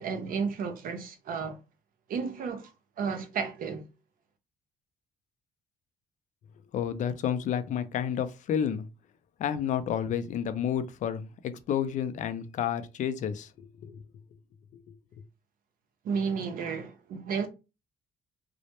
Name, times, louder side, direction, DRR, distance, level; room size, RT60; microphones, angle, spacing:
voice 1, 0.0-1.6 2.1-2.7 3.0-3.9 16.0-17.5, right 5 dB, 55° right, 0.5 m, -32 dB
voice 2, 6.7-8.8 9.4-14.0, left 8 dB, 50° left, 0.4 m, -30 dB
2.1 x 2.0 x 2.8 m
cardioid pair, 110°, 17 cm